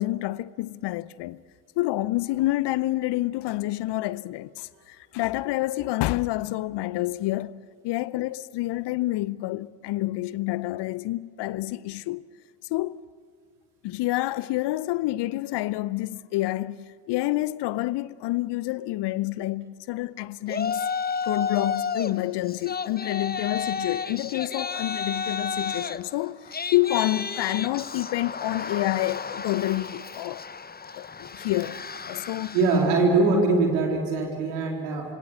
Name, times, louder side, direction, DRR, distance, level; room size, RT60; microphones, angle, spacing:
voice 1, 0.0-1.4 1.8-12.3 12.7-13.1 13.8-20.8 21.2-30.4 31.0-32.6, left 17 dB, 60° left, 0.7 m, -28 dB
Yell, 20.5-22.1 22.5-32.9, left 5 dB, 20° left, 0.9 m, -32 dB
voice 2, 32.5-35.1, right 3 dB, 75° right, 3.8 m, -22 dB
27.0 x 24.0 x 8.4 m
figure-of-eight pair, 40°, 48 cm